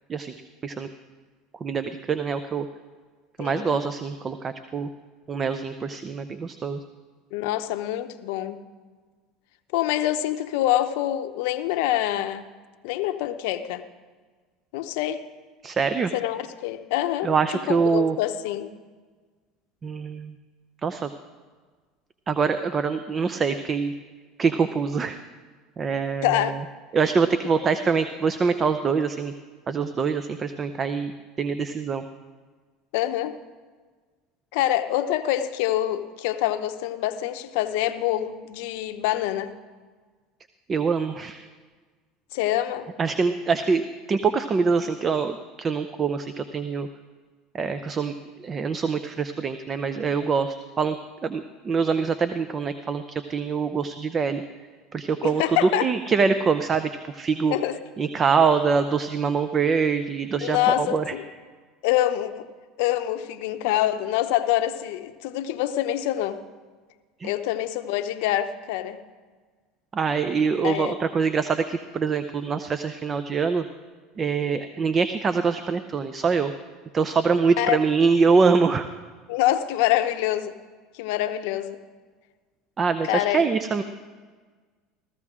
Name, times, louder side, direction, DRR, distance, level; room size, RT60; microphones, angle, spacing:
voice 1, 1.6-2.7 3.4-4.9 5.3-6.8 15.6-16.1 17.2-18.2 19.8-20.4 20.8-21.1 22.3-23.9 24.4-25.2 25.8-26.6 26.9-29.3 29.7-31.1 31.4-32.0 40.7-41.5 43.0-43.8 44.1-46.9 47.5-51.0 51.2-54.4 54.9-57.5 58.0-61.1 67.2-67.3 69.9-73.6 74.2-76.5 76.9-78.9 82.8-83.8, right 5 dB, 30° right, 10 dB, 0.6 m, -24 dB
voice 2, 3.4-3.8 7.3-8.6 9.7-12.5 12.8-13.8 14.7-15.2 16.1-17.3 17.7-18.7 26.2-26.5 32.9-33.4 34.5-39.5 42.3-42.9 55.2-55.9 57.5-57.8 60.4-61.2 61.8-62.4 62.8-66.4 67.2-69.0 70.6-70.9 77.6-77.8 79.3-80.5 80.9-81.8 83.1-83.4, left 13 dB, 75° left, 10 dB, 0.7 m, -25 dB
15.0 x 14.5 x 3.7 m, 1.5 s
supercardioid pair, 95°, 0 cm